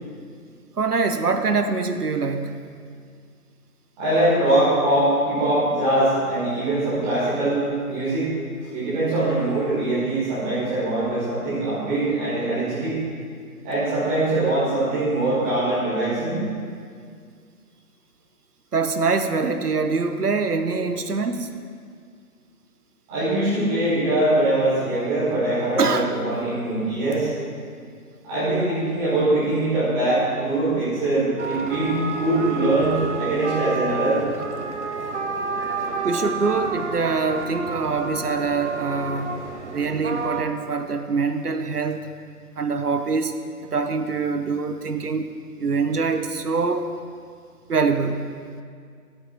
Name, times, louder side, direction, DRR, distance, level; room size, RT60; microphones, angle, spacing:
voice 1, 0.8-2.6 14.2-14.3 18.7-21.5 25.8-26.1 36.0-39.4 39.7-42.1 42.6-43.3 43.6-45.3 45.6-46.9 47.7-48.3, right 4 dB, 75° right, 8 dB, 0.9 m, -24 dB
voice 2, 4.0-8.3 8.7-13.0 13.6-16.4 23.1-27.3 28.2-34.2, right 1 dB, 5° right, -13 dB, 0.7 m, -22 dB
sound 1, 31.4-40.4, right 4 dB, 50° right, 0.9 m, -30 dB
12.0 x 8.5 x 4.4 m, 2.1 s
figure-of-eight pair, 140°, 46 cm